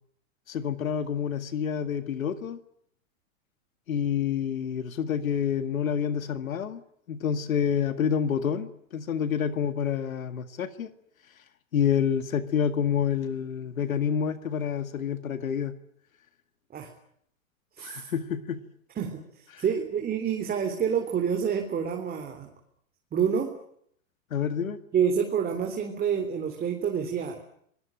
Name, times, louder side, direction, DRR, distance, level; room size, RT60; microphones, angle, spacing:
voice 1, 0.5-2.6 3.9-6.8 7.1-10.9 11.7-15.7 17.8-18.6 19.5-19.6 24.3-24.8, left 8 dB, 85° left, 10 dB, 2.0 m, -28 dB
voice 2, 17.8-18.1 19.0-22.5 23.1-23.5 24.9-27.4, right 7 dB, 20° right, 3 dB, 3.6 m, -28 dB
26.0 x 21.0 x 9.0 m, 0.69 s
hypercardioid pair, 115°, 40 cm